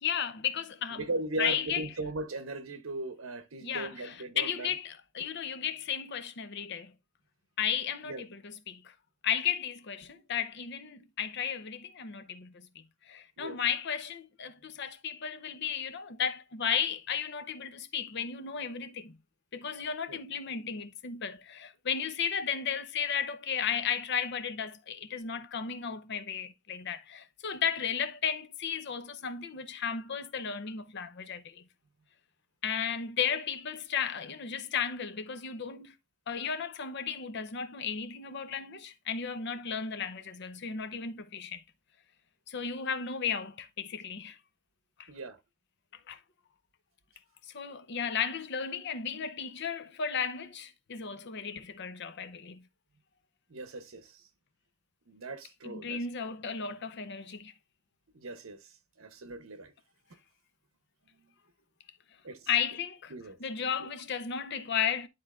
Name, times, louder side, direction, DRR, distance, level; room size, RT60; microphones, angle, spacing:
voice 1, 0.0-1.0 1.4-1.9 3.6-6.9 7.6-8.9 9.2-19.2 19.5-31.7 32.6-36.0 36.3-41.6 42.5-44.4 45.0-45.1 46.1-46.2 47.5-52.7 55.6-57.5 62.5-63.1 63.4-65.1, left 7 dB, 55° left, 0.6 m, -34 dB
voice 2, 0.9-4.7 8.0-8.2 13.4-13.6 20.1-20.2 45.1-45.4 53.5-54.2 55.1-56.0 58.1-58.6 59.0-59.7 62.2-62.5 63.1-63.4 63.8-63.9, right 2 dB, 75° right, 0.9 m, -38 dB
11.5 x 3.9 x 2.4 m
head